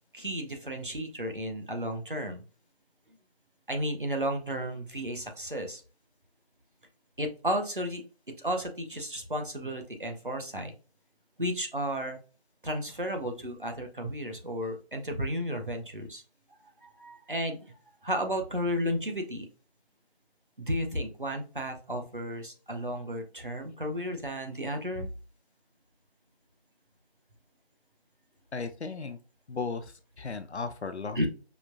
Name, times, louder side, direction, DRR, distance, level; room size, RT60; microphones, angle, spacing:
voice 1, 0.1-2.4 3.7-5.8 7.2-10.7 11.4-12.2 12.6-16.2 16.8-17.6 18.0-19.5 20.6-25.1 31.2-31.3, equal, 50° right, 4 dB, 0.7 m, -33 dB
voice 2, 28.5-29.2 29.5-31.3, left 4 dB, 85° left, 10 dB, 0.6 m, -36 dB
5.0 x 2.1 x 2.4 m, 0.36 s
figure-of-eight pair, 175°, 33 cm